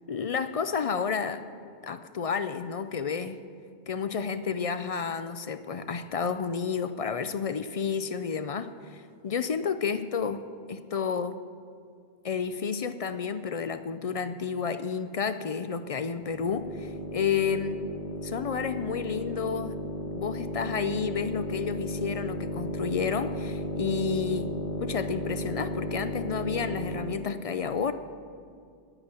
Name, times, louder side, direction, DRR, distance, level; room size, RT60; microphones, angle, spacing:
voice 1, 0.1-1.4 1.8-3.4 3.9-8.7 9.2-11.4 12.2-17.8 18.2-19.8 20.1-24.5 24.8-27.9, left 6 dB, 55° left, 11 dB, 0.4 m, -31 dB
sound 1, 16.2-27.3, equal, 70° left, 1.8 m, -35 dB
10.0 x 9.8 x 8.9 m, 2.3 s
omnidirectional pair, 1.1 m